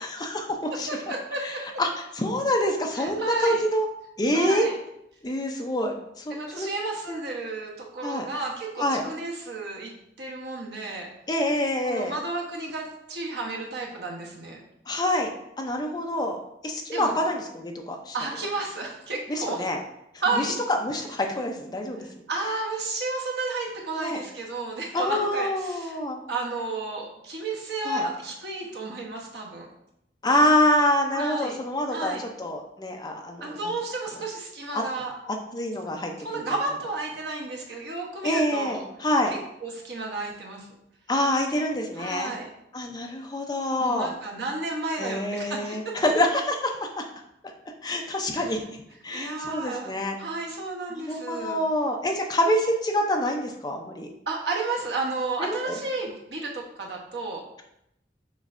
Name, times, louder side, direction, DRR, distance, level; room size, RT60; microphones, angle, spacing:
voice 1, 0.0-0.9 1.4-1.9 2.1-3.9 4.2-4.7 5.2-6.7 7.1-7.2 8.0-8.2 8.8-9.0 11.3-12.1 14.9-15.3 15.6-16.4 16.6-18.1 19.3-19.8 20.3-22.0 24.0-24.2 24.9-26.2 27.8-28.0 30.2-33.6 34.7-34.8 35.3-36.4 38.2-39.3 41.1-42.3 42.7-44.2 45.0-47.0 47.8-48.6 49.0-50.2 50.9-54.1 55.4-55.8, left 1 dB, 20° left, 2 dB, 0.5 m, -26 dB
voice 2, 0.9-1.6 2.9-3.6 4.3-4.8 6.3-9.9 10.2-11.1 11.8-14.6 16.9-17.1 18.1-19.6 20.2-20.5 22.0-26.0 26.3-29.7 31.1-31.6 31.9-32.2 33.4-35.1 36.2-38.8 39.3-40.7 42.0-42.5 43.8-45.9 48.3-48.5 49.1-49.9 50.2-51.6 54.3-57.4, right 3 dB, 65° right, -1 dB, 0.9 m, -32 dB
6.2 x 3.2 x 2.5 m, 0.80 s
head